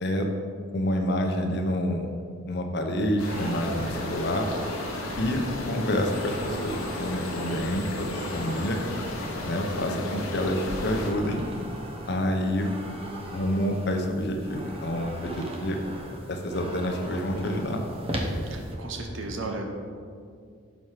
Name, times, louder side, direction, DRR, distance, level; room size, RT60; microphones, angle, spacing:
voice 1, 0.7-2.1 2.5-4.5 5.2-8.8 9.4-11.4 12.1-12.7 13.3-15.8 16.3-17.8, equal, 50° left, 3 dB, 0.7 m, -28 dB
sound 1, 3.2-11.1, left 2 dB, 80° left, 0.9 m, -34 dB
sound 2, 3.2-18.8, right 1 dB, 25° right, 0.8 m, -39 dB
voice 2, 18.4-19.6, right 3 dB, 60° right, 2 dB, 0.9 m, -35 dB
6.1 x 4.8 x 5.7 m, 2.3 s
head